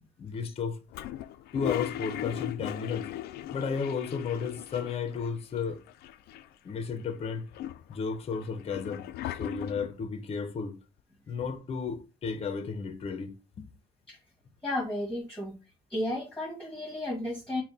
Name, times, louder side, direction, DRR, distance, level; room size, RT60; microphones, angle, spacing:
voice 1, 0.2-0.8 1.5-3.1 3.5-5.8 6.6-7.5 7.9-10.8 11.3-13.7, left 5 dB, 35° left, 0.7 m, -33 dB
Toilet flush, 0.9-5.3 5.6-5.7 5.9-6.7 7.2-10.0, left 13 dB, 70° left, 0.4 m, -38 dB
voice 2, 14.6-15.6 15.9-17.6, left 1 dB, 5° left, 1.5 m, -33 dB
5.6 x 2.2 x 4.0 m
cardioid pair, 110°, 17 cm